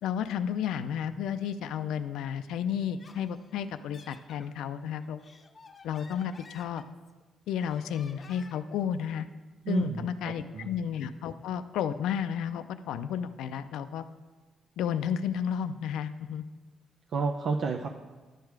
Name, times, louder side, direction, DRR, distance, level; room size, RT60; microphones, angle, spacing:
voice 1, 0.0-5.2 5.8-6.8 7.5-9.3 9.7-14.1 14.8-16.4, left 8 dB, 85° left, 11 dB, 0.4 m, -32 dB
Laughter, 2.8-4.5 5.0-7.2 7.6-8.8, left 4 dB, 35° left, 0.7 m, -53 dB
voice 2, 9.6-10.7 17.1-17.9, right 4 dB, 60° right, 2 dB, 0.6 m, -30 dB
11.0 x 6.7 x 4.7 m, 1.3 s
cardioid pair, 90°, 0 cm